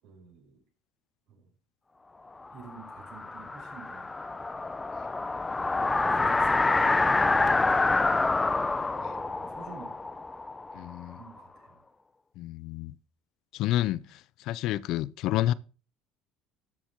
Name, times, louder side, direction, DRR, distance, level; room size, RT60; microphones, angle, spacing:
voice 1, 0.0-0.6 1.3-1.5 2.5-4.1 6.0-6.9 7.4-8.3 9.0-10.1 10.8-11.8, right 5 dB, 70° right, 5.5 m, -50 dB
sound 1, 2.6-11.3, left 3 dB, 15° left, 0.7 m, -27 dB
voice 2, 10.7-11.2 12.4-12.9 13.5-14.2 14.5-15.5, left 14 dB, 65° left, 0.5 m, -29 dB
13.5 x 7.2 x 3.6 m
supercardioid pair, 95°, 0 cm